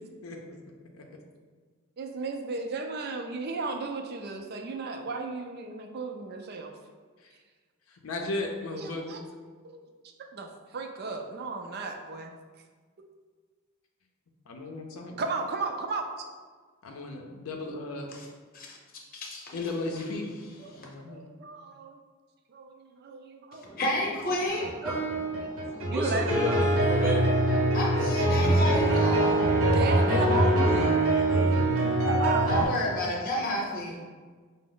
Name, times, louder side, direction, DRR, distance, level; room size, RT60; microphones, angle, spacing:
voice 1, 0.2-0.6 0.9-1.0 8.0-9.2 14.5-15.2 16.8-18.1 19.5-20.3 20.8-21.3 28.5-28.7 29.9-30.8, left 2 dB, 80° left, 2 dB, 0.5 m, -35 dB
voice 2, 2.0-6.7 8.7-9.2 9.6-9.8 10.3-12.3 15.2-16.2 20.6-22.0 22.5-23.8 25.9-26.3 29.7-30.5 32.1-32.5, right 3 dB, 50° right, 4 dB, 0.4 m, -34 dB
voice 3, 19.1-19.7 20.0-20.1 20.7-20.9 23.5-24.7 27.7-29.5 32.5-34.0, left 1 dB, 45° left, -2 dB, 0.7 m, -31 dB
voice 4, 24.3-27.7 30.6-32.2, equal, 5° right, -8 dB, 0.6 m, -35 dB
sound 1, 24.5-32.6, right 1 dB, 80° right, 0.8 m, -24 dB
5.0 x 2.0 x 3.8 m, 1.5 s
head